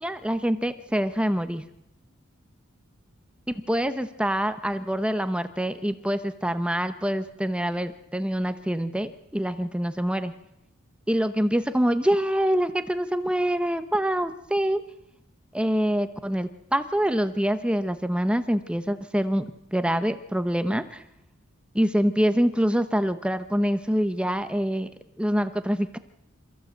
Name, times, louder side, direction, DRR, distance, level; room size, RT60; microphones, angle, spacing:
voice 1, 0.0-1.6 3.5-10.3 11.1-14.8 15.5-19.4 19.7-21.0 21.7-24.9 25.2-26.0, equal, 5° right, 10 dB, 0.8 m, -25 dB
28.0 x 15.0 x 7.9 m, 0.85 s
head